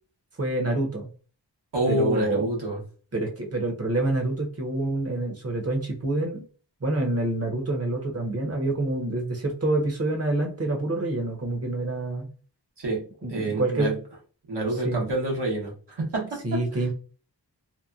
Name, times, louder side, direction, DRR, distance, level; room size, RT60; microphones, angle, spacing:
voice 1, 0.4-1.1 1.9-2.4 3.1-6.4 6.8-12.3 13.2-13.9 14.8-15.0 16.4-16.9, right 2 dB, 35° right, 2 dB, 0.8 m, -27 dB
voice 2, 1.7-2.8 12.8-13.0 13.3-14.0 14.5-16.4, right 1 dB, 75° right, -2 dB, 1.1 m, -27 dB
2.9 x 2.1 x 2.4 m, 0.39 s
wide cardioid pair, 70°, 41 cm